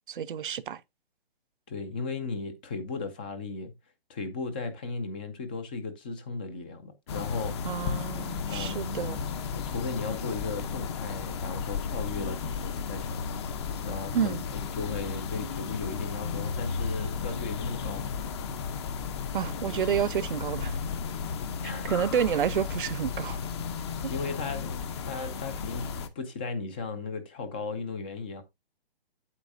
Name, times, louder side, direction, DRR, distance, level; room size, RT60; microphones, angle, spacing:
voice 1, 0.1-0.8 7.6-9.2 14.1-14.4 19.3-20.8 21.8-23.4 24.0-24.1, right 8 dB, 55° right, 0.7 m, -29 dB
voice 2, 1.7-3.7 4.1-7.5 8.5-9.0 9.5-13.4 13.8-18.0 21.6-21.9 23.7-24.8 25.0-25.9 26.2-28.4, left 4 dB, 10° left, 0.5 m, -36 dB
sound 1, 7.1-26.1, left 6 dB, 25° left, 0.8 m, -34 dB
8.6 x 8.3 x 2.6 m
hypercardioid pair, 155°, 31 cm